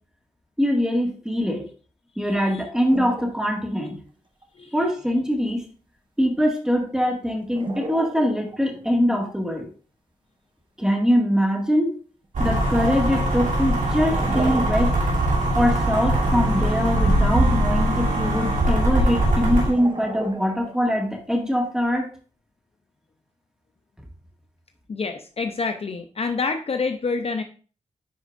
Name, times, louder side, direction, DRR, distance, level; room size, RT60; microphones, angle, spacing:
voice 1, 0.6-1.6 2.2-4.0 4.7-5.6 6.2-9.7 10.8-11.9 12.4-15.0 15.6-22.1, equal, 5° right, 1 dB, 1.9 m, -23 dB
voice 2, 2.2-2.6 3.8-3.9 4.6-4.8 24.9-27.4, left 4 dB, 50° left, 7 dB, 0.6 m, -28 dB
sound 1, 2.9-3.5 3.9-4.0 4.4-4.5 7.4-8.8 12.2-12.3 13.8-15.3 15.6-15.7 19.5-21.0, right 2 dB, 35° right, 1.3 m, -34 dB
sound 2, 12.3-19.7, right 1 dB, 75° right, 2.7 m, -21 dB
10.0 x 4.4 x 2.5 m, 0.39 s
cardioid pair, 75°, 13 cm